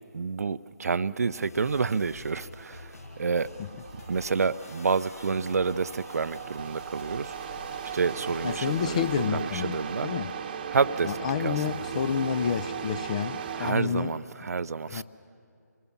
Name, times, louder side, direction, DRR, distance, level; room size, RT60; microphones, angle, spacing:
voice 1, 0.1-2.9 3.2-3.5 4.1-7.6 7.9-10.1 10.7-11.1 11.4-11.6 13.6-15.0, right 5 dB, 60° right, 16 dB, 0.5 m, -29 dB
sound 1, 1.4-9.2, left 3 dB, 55° left, 1.4 m, -48 dB
sound 2, 2.6-13.7, right 7 dB, 30° right, 1.0 m, -37 dB
voice 2, 8.4-10.3 11.0-14.2 14.9-15.0, left 7 dB, 20° left, 13 dB, 0.5 m, -29 dB
26.0 x 19.0 x 7.2 m, 2.5 s
figure-of-eight pair, 155°, 10 cm